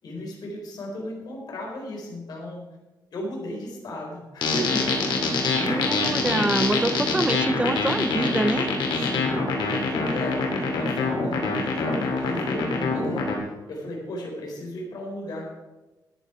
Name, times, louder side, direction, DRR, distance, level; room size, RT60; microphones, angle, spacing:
voice 1, 0.0-2.6 3.1-5.1 9.1-9.4 9.7-15.5, left 1 dB, 60° left, -1 dB, 4.0 m, -35 dB
sound 1, 4.4-13.4, left 4 dB, 90° left, 2.7 m, -25 dB
voice 2, 5.6-8.7, right 2 dB, 15° right, 11 dB, 0.7 m, -25 dB
13.0 x 10.0 x 4.9 m, 1.1 s
wide cardioid pair, 140°, 8 cm